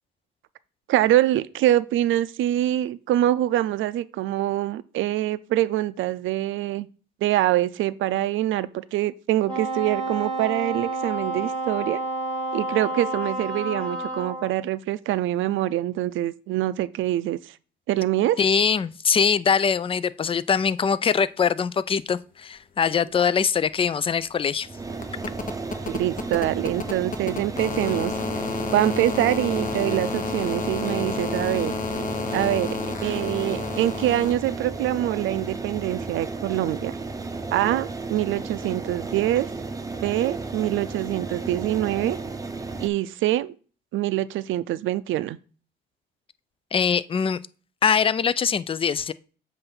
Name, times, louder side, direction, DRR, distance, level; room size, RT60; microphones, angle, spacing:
voice 1, 0.9-6.9 7.2-12.0 12.5-17.4 17.9-18.4 25.9-28.1 28.7-31.7 32.3-37.0 37.5-39.5 40.0-42.2 42.8-43.5 43.9-45.4, right 13 dB, 80° right, 0.5 m, -24 dB
Wind instrument woodwind instrument, 9.5-14.5, right 2 dB, 5° left, 3.2 m, -29 dB
voice 2, 18.4-24.7 46.7-47.4 47.8-49.1, left 6 dB, 30° left, 0.4 m, -22 dB
sound 1, 23.1-23.2 23.4-34.3 35.8-35.9, left 5 dB, 45° left, 1.0 m, -31 dB
sound 2, 24.6-42.9, right 3 dB, 15° right, 0.7 m, -33 dB
7.7 x 2.6 x 5.8 m
cardioid pair, 90°, 20 cm